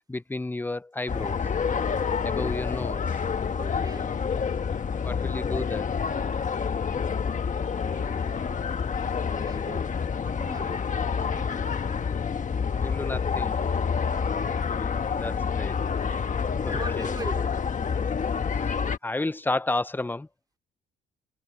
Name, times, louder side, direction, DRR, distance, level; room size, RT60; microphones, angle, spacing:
voice 1, 0.1-1.4 2.2-3.0 5.0-5.9 12.8-13.6 14.4-15.7 16.6-17.1 18.5-18.7 19.0-20.3, left 2 dB, 10° left, 0.7 m, -32 dB
sound 1, 1.1-19.0, left 6 dB, 40° left, 1.4 m, -28 dB
sound 2, 3.1-10.4, left 8 dB, 55° left, 7.3 m, -46 dB
voice 2, 3.5-4.1 7.8-8.8 9.1-9.9 10.2-10.9 11.2-11.9 14.1-14.5 16.3-17.5, right 2 dB, 20° right, 2.8 m, -42 dB
cardioid pair, 90°, 20 cm